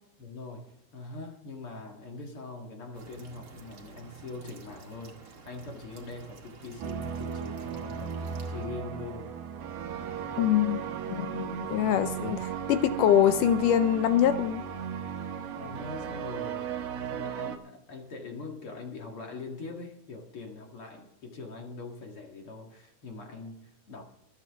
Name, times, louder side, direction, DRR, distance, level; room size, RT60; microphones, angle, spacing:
voice 1, 0.2-9.4 15.5-16.7 17.1-24.0, left 3 dB, 45° left, 2 dB, 2.2 m, -42 dB
sound 1, 2.9-8.7, right 4 dB, 40° right, 2.3 m, -50 dB
sound 2, 6.8-17.6, right 8 dB, 75° right, 3.2 m, -36 dB
voice 2, 10.4-14.6, left 10 dB, 80° left, 10 dB, 1.9 m, -24 dB
25.5 x 9.0 x 3.6 m, 0.77 s
omnidirectional pair, 4.4 m